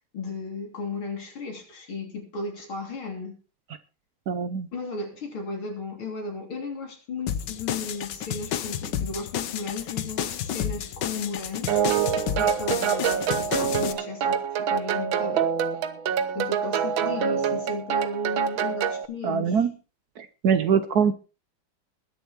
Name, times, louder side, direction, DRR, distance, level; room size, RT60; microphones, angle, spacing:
voice 1, 0.1-3.4 4.7-11.8 12.4-15.5 16.4-19.6, left 3 dB, 80° left, 3.9 m, -35 dB
voice 2, 4.3-4.7 19.2-19.7 20.2-21.1, right 7 dB, 55° right, 1.2 m, -23 dB
sound 1, 7.3-13.9, left 9 dB, 65° left, 1.4 m, -31 dB
sound 2, 11.7-19.1, right 7 dB, 75° right, 1.8 m, -26 dB
21.0 x 7.0 x 4.3 m
omnidirectional pair, 2.2 m